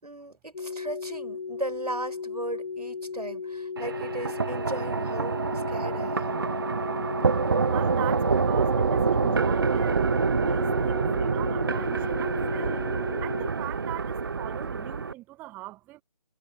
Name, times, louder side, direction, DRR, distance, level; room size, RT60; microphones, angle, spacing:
voice 1, 0.0-6.4, right 1 dB, 80° right, 5.6 m, -37 dB
sound 1, 0.5-13.5, left 5 dB, 45° left, 7.2 m, -36 dB
sound 2, 3.8-15.1, right 5 dB, 35° right, 0.6 m, -26 dB
voice 2, 7.6-10.1 10.4-12.9 13.2-16.0, right 18 dB, 10° right, 1.6 m, -40 dB
figure-of-eight pair, 150°, 20 cm